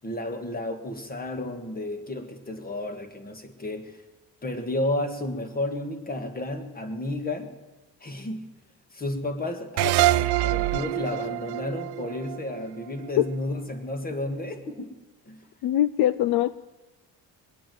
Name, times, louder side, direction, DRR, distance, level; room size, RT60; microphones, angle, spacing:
voice 1, 0.0-4.0 4.4-7.5 8.0-8.5 8.9-14.9 15.3-15.4, left 1 dB, 25° left, 7 dB, 1.8 m, -32 dB
sound 1, 9.8-13.1, right 17 dB, 85° right, 0.5 m, -25 dB
voice 2, 15.6-16.5, left 13 dB, 70° left, 17 dB, 0.5 m, -22 dB
22.0 x 8.6 x 7.8 m, 1.2 s
cardioid pair, 135°, 39 cm